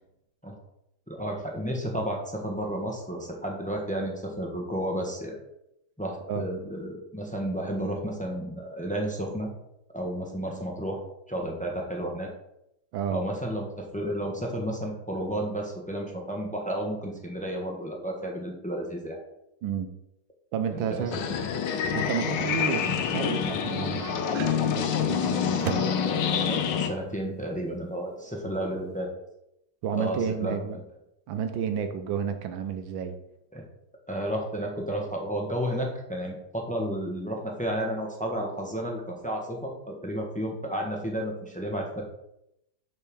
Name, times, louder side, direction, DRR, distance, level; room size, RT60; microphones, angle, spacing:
voice 1, 1.1-5.4 6.0-9.5 9.9-11.0 11.3-12.3 13.1-19.2 20.7-21.4 25.3-29.1 29.9-30.6 33.5-33.6 34.1-42.0, right 1 dB, 5° left, 1 dB, 0.8 m, -32 dB
voice 2, 20.5-21.2 21.9-25.6 29.8-30.8 31.3-33.1, right 7 dB, 75° right, 8 dB, 1.4 m, -31 dB
sound 1, 21.1-26.9, left 7 dB, 65° left, 1.3 m, -27 dB
sound 2, 23.4-29.0, right 8 dB, 90° right, 1.5 m, -39 dB
6.8 x 4.4 x 6.1 m, 0.82 s
omnidirectional pair, 2.2 m